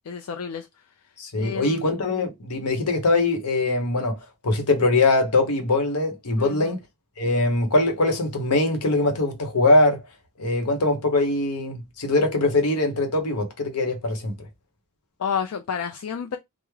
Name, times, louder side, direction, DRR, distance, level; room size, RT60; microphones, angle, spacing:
voice 1, 0.1-0.7 1.4-1.8 6.4-6.7 15.2-16.4, left 7 dB, 70° left, 0.4 m, -30 dB
voice 2, 1.2-4.2 4.4-6.8 7.2-10.0 10.4-14.3, left 2 dB, 90° left, 0.9 m, -22 dB
3.4 x 2.0 x 3.1 m
head